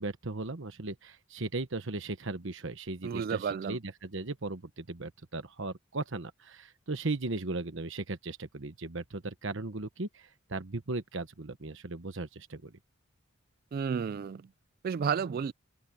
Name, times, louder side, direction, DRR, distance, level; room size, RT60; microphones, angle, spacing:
voice 1, 0.0-12.7, right 2 dB, 65° right, 1.2 m, -37 dB
voice 2, 3.0-3.8 13.7-14.4 14.8-15.5, right 6 dB, 45° right, 0.3 m, -31 dB
open air
head